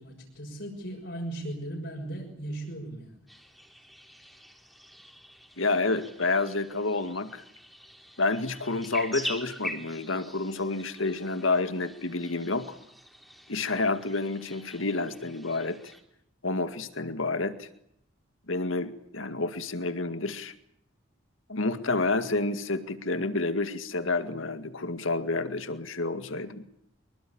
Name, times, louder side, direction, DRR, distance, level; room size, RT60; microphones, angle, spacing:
voice 1, 0.0-3.2, right 1 dB, 60° left, -1 dB, 6.5 m, -37 dB
sound 1, 3.3-16.0, equal, ahead, 3.5 m, -44 dB
voice 2, 5.6-7.4 8.2-12.8 13.5-15.9 16.4-17.7 18.5-20.5 21.5-26.6, left 3 dB, 80° left, 10 dB, 2.0 m, -29 dB
25.5 x 23.0 x 8.7 m, 0.74 s
head